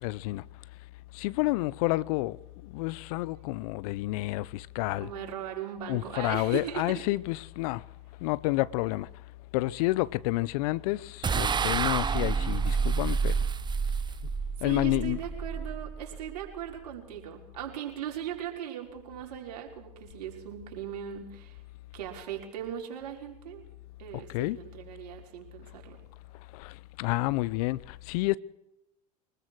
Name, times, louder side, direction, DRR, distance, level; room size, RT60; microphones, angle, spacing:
voice 1, 0.0-0.4 1.1-5.1 5.9-7.8 8.2-9.1 9.5-13.4 14.6-15.2 24.1-24.6 26.5-28.4, left 20 dB, 65° left, 0.9 m, -29 dB
voice 2, 5.0-7.0 14.6-21.6 21.9-23.6 24.0-26.0, right 10 dB, 75° right, 5.5 m, -38 dB
sound 1, 11.2-16.6, right 5 dB, 20° right, 0.8 m, -29 dB
24.0 x 20.5 x 6.4 m
hypercardioid pair, 80°, 20 cm